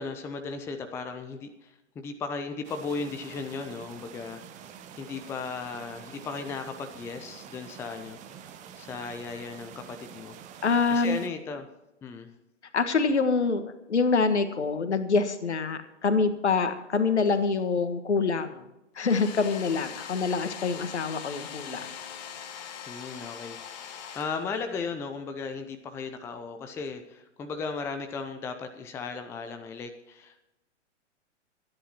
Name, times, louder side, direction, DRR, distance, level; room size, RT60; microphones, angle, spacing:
voice 1, 0.0-10.6 10.9-11.7 12.0-12.3 22.9-30.4, left 4 dB, 5° left, 7 dB, 0.5 m, -36 dB
sound 1, 2.6-11.3, right 8 dB, 20° right, 1.0 m, -47 dB
voice 2, 10.6-11.2 12.7-18.7 18.9-21.9, left 4 dB, 65° left, 10 dB, 1.6 m, -26 dB
Domestic sounds home sounds, 19.0-24.8, left 8 dB, 35° left, 1.6 m, -42 dB
24.5 x 10.5 x 2.9 m, 0.96 s
figure-of-eight pair, 110°, 36 cm